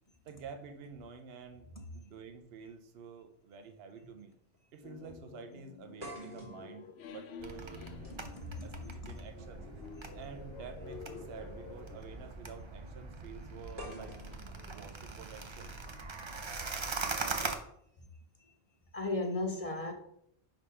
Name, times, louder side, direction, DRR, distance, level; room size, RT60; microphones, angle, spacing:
voice 1, 0.2-1.7 1.9-4.3 4.7-7.8 8.6-9.6 10.1-14.2 14.7-15.7, right 6 dB, 70° right, 6 dB, 0.9 m, -49 dB
sound 1, 4.0-4.2 4.5-4.6 6.0-10.0 11.2-11.4 13.8-15.8, equal, 55° right, 2.0 m, -51 dB
sound 2, 4.8-12.2, left 6 dB, 85° left, 0.9 m, -50 dB
sound 3, 7.4-17.5, right 3 dB, 35° right, 0.6 m, -42 dB
voice 2, 18.9-19.9, left 2 dB, 40° left, 3 dB, 0.7 m, -34 dB
4.9 x 3.9 x 5.6 m, 0.72 s
omnidirectional pair, 1.1 m